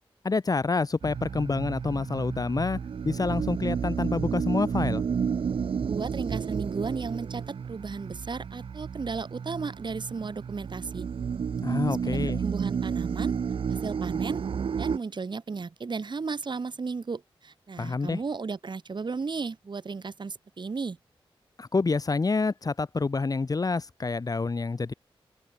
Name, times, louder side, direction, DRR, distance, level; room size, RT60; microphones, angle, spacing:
voice 1, 0.2-2.8 3.0-5.0 11.6-12.4 17.8-18.2 21.6-24.9, left 4 dB, 40° left, 1.3 m, -27 dB
sound 1, 1.0-15.0, right 6 dB, 70° right, 0.9 m, -31 dB
voice 2, 5.8-11.1 11.7-13.4 13.7-14.4 14.8-21.0, right 4 dB, 55° right, 4.0 m, -35 dB
open air
cardioid pair, 70°, 10 cm